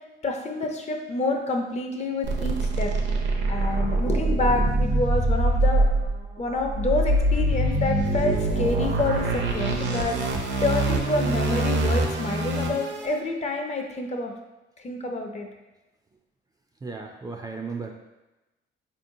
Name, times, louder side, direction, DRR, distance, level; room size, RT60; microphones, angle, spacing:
voice 1, 0.2-2.9 3.5-5.9 6.4-14.3 14.8-15.5, left 2 dB, 35° left, 3 dB, 0.5 m, -28 dB
sound 1, 2.2-13.1, right 2 dB, 65° right, 0.6 m, -24 dB
voice 2, 16.8-17.9, right 4 dB, 20° right, 2 dB, 0.4 m, -35 dB
4.2 x 2.8 x 2.6 m, 1.0 s
cardioid pair, 90°, 20 cm